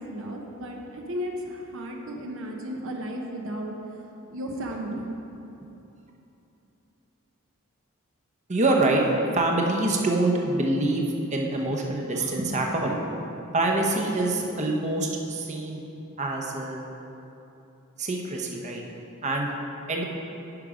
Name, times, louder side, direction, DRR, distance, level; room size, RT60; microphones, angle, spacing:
voice 1, 0.0-3.7 4.3-5.0, equal, 65° right, 1 dB, 1.0 m, -34 dB
voice 2, 8.5-9.1 9.3-13.0 13.5-15.8 16.2-16.8 18.0-18.8 19.2-19.5 19.9-20.0, right 2 dB, 35° right, 1 dB, 0.9 m, -25 dB
11.0 x 5.3 x 4.9 m, 2.9 s
head